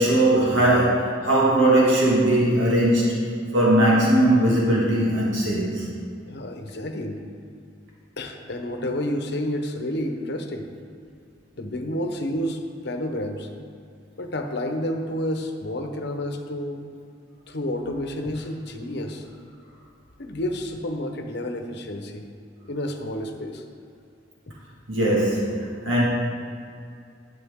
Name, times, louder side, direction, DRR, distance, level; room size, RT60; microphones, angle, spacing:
voice 1, 0.0-5.9 24.9-26.1, right 1 dB, 80° right, -4 dB, 1.8 m, -20 dB
voice 2, 6.3-7.2 8.2-10.7 11.6-12.6 12.8-13.5 14.2-16.8 17.5-19.3 20.2-22.3 22.7-23.6 24.5-24.6, left 1 dB, 60° left, 4 dB, 1.0 m, -30 dB
11.5 x 8.1 x 3.7 m, 2.4 s
head